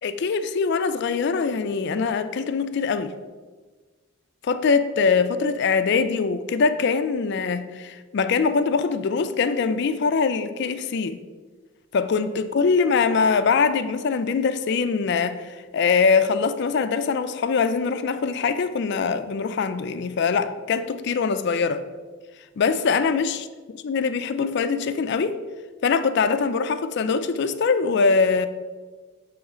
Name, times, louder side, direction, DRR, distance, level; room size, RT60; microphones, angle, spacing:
voice 1, 0.0-3.1 4.4-11.2 11.9-21.8 22.6-23.4 23.8-25.3 25.8-28.5, left 5 dB, 55° left, 11 dB, 0.4 m, -23 dB
7.2 x 3.1 x 4.9 m, 1.4 s
head